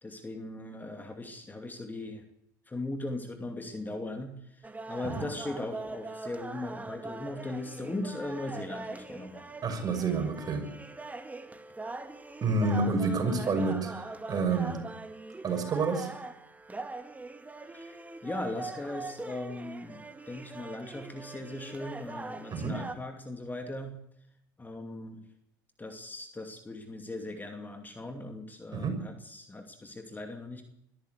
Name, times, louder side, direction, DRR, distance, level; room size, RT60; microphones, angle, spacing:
voice 1, 0.0-2.2 2.7-9.5 17.7-18.0 18.2-23.9 24.6-25.2 25.8-30.6, left 2 dB, 15° left, 5 dB, 2.5 m, -39 dB
sound 1, 4.6-23.0, right 3 dB, 15° right, 2.1 m, -42 dB
voice 2, 9.6-10.7 12.4-14.8 15.4-16.1 22.5-22.8 28.7-29.0, right 3 dB, 35° right, 5 dB, 6.3 m, -29 dB
22.5 x 14.0 x 8.1 m, 0.77 s
hypercardioid pair, 70°, 11 cm